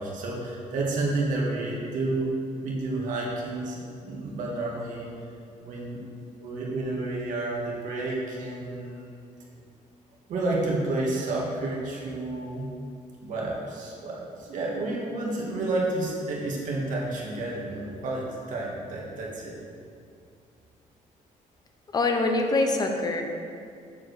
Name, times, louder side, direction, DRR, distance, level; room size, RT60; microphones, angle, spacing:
voice 1, 0.0-2.3 2.6-5.1 5.6-6.0 6.4-9.1 10.3-12.7 13.2-19.6, right 2 dB, 70° right, -3 dB, 2.0 m, -30 dB
voice 2, 21.9-23.2, left 2 dB, 30° left, 4 dB, 0.8 m, -24 dB
7.1 x 5.0 x 6.7 m, 2.4 s
cardioid pair, 145°, 14 cm